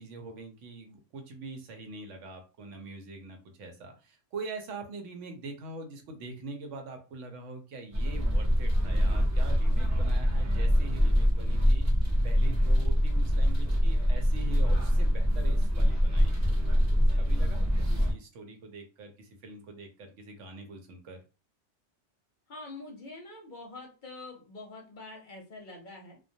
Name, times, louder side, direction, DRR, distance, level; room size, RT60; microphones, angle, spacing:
voice 1, 0.0-16.5 17.2-21.2, right 3 dB, 90° right, 5 dB, 1.0 m, -44 dB
sound 1, 7.9-18.1, equal, 25° right, 0.3 m, -24 dB
voice 2, 22.5-26.2, left 2 dB, 55° left, 0 dB, 0.6 m, -45 dB
2.2 x 2.2 x 2.6 m, 0.33 s
omnidirectional pair, 1.2 m